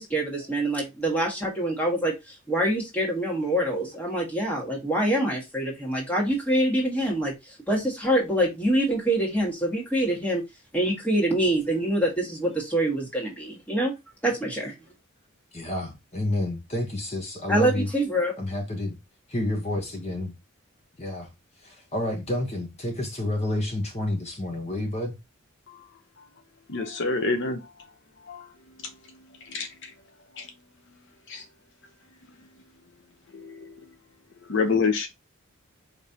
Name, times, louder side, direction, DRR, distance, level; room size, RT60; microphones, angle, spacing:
voice 1, 0.0-10.4 10.7-13.9 14.2-14.7 17.5-18.3, right 1 dB, 5° left, 1.5 m, -25 dB
voice 2, 15.5-17.9 18.4-19.0 19.3-20.3 21.0-21.3 21.6-25.1, left 1 dB, 30° left, 1.0 m, -29 dB
voice 3, 26.7-27.6 28.3-28.4 29.5-29.7 30.4-30.5 31.3-31.4 33.3-33.7 34.5-35.1, left 4 dB, 60° left, 0.6 m, -26 dB
4.9 x 3.2 x 2.7 m
head